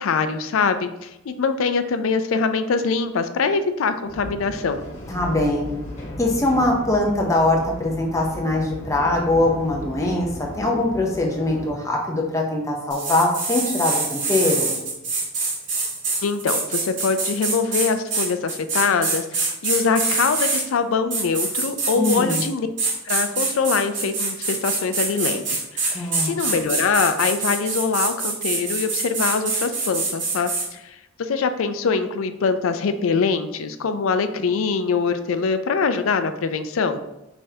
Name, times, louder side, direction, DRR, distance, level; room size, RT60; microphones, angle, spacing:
voice 1, 0.0-4.8 16.2-22.7 23.0-37.0, left 5 dB, 85° left, 10 dB, 0.4 m, -23 dB
sound 1, 4.0-11.7, equal, 35° left, 1.3 m, -36 dB
voice 2, 5.1-5.7 6.2-10.3 10.5-14.8 22.0-22.4 25.9-26.3, left 2 dB, 15° left, -1 dB, 0.6 m, -22 dB
sound 2, 12.9-20.6 21.1-22.5 22.8-30.7, right 3 dB, 60° right, 1.7 m, -25 dB
5.3 x 3.5 x 2.8 m, 0.91 s
head